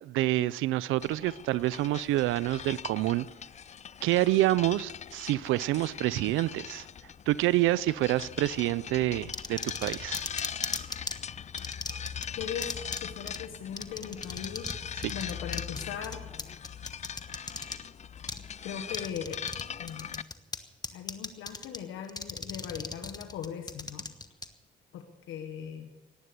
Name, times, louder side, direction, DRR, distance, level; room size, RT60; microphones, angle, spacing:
voice 1, 0.0-3.3 4.0-6.9 7.3-10.2, right 16 dB, 90° right, 20 dB, 0.5 m, -27 dB
sound 1, 1.0-20.2, left 8 dB, 35° left, 0.5 m, -41 dB
sound 2, 9.3-11.2 11.6-12.3 12.6-13.0 13.3-13.4 13.8-14.8 15.0-17.8 18.3-18.4 18.9-19.6 19.9-20.6 20.8-21.8 22.1-24.5, left 3 dB, 20° left, 1.3 m, -36 dB
voice 2, 12.4-16.2 18.6-19.5 19.8-20.2 20.6-24.1 24.9-25.9, left 8 dB, 90° left, 5 dB, 1.4 m, -39 dB
17.5 x 11.5 x 6.8 m, 1.2 s
cardioid pair, 90°, 20 cm